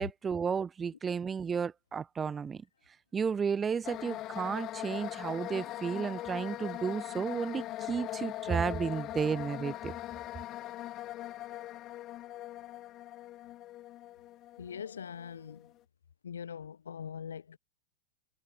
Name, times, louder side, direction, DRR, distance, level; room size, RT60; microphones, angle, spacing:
voice 1, 0.0-2.6 3.1-9.9, right 6 dB, 20° right, 1.0 m, -33 dB
sound 1, 3.8-15.7, left 14 dB, 35° left, 1.7 m, -41 dB
voice 2, 14.6-15.7 16.2-17.6, left 7 dB, 70° left, 1.1 m, -42 dB
figure-of-eight pair, 90°, 0 cm